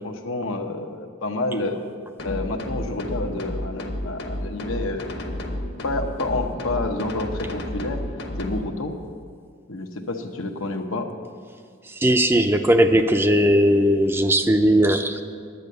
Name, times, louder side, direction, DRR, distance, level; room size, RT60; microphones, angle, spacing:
voice 1, 0.0-1.8 2.2-5.4 5.8-8.0 8.4-8.9 9.7-11.1, left 2 dB, 90° left, 4 dB, 1.0 m, -29 dB
sound 1, 2.2-8.6, left 1 dB, 55° left, 1.1 m, -31 dB
voice 2, 12.0-15.2, equal, 10° right, 7 dB, 0.4 m, -18 dB
11.0 x 8.5 x 6.7 m, 2.1 s
head